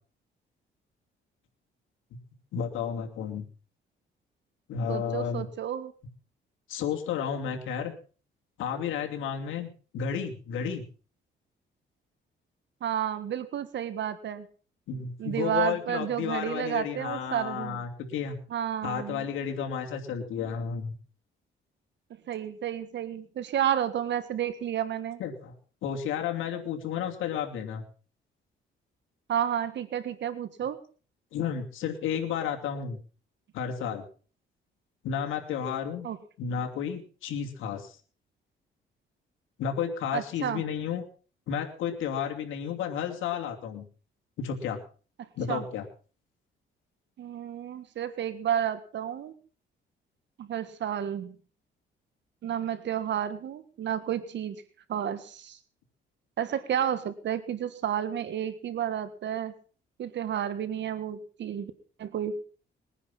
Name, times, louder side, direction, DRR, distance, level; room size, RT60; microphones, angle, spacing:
voice 1, 2.5-3.5 4.7-5.5 6.7-7.9 8.6-10.8 14.9-18.4 18.8-20.9 25.2-25.5 25.8-27.8 31.3-33.0 33.5-34.1 35.0-36.1 36.4-38.0 39.6-41.0 41.5-43.9 44.4-44.8 45.4-45.9, left 7 dB, 85° left, 2 dB, 2.8 m, -32 dB
voice 2, 4.9-5.9 12.8-14.5 15.2-17.8 18.5-19.2 22.3-25.2 29.3-30.8 36.0-36.2 40.1-40.6 45.5-45.6 47.2-49.3 50.4-51.3 52.4-54.6 54.9-55.6 56.4-59.5 60.0-61.7 62.0-62.4, right 9 dB, 65° right, 13 dB, 1.6 m, -31 dB
21.0 x 10.0 x 5.7 m, 0.40 s
cardioid pair, 90°, 20 cm